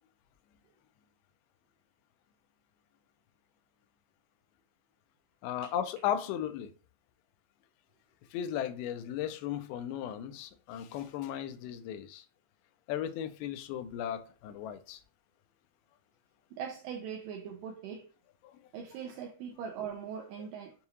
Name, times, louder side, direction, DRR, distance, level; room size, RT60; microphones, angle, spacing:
voice 1, 5.4-6.7 8.3-12.3 12.9-15.0 18.4-18.6, left 10 dB, 85° left, 2.4 m, -36 dB
voice 2, 16.5-18.1 18.7-20.7, right 7 dB, 85° right, 1.9 m, -41 dB
6.9 x 2.3 x 2.7 m
omnidirectional pair, 4.5 m